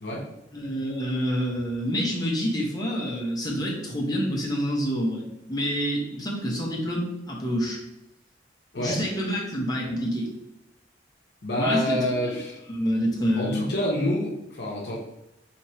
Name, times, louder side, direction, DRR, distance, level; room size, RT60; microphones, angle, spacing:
voice 1, 0.5-7.8 8.7-10.3 11.6-12.4 12.7-13.7, equal, 20° left, -3 dB, 0.9 m, -27 dB
voice 2, 11.4-12.6 13.3-15.0, left 1 dB, 60° left, -3 dB, 0.9 m, -27 dB
3.2 x 2.9 x 4.3 m, 0.86 s
head